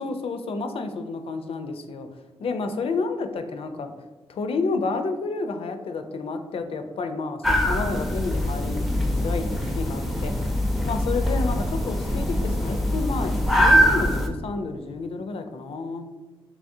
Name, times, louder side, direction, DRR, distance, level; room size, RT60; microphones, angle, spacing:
voice 1, 0.0-2.1 2.4-3.9 4.3-10.3 10.8-16.1, left 3 dB, 70° left, 7 dB, 0.4 m, -30 dB
sound 1, 7.4-14.3, equal, ahead, 0.5 m, -23 dB
3.6 x 3.0 x 2.6 m, 1.2 s
cardioid pair, 85°, 10 cm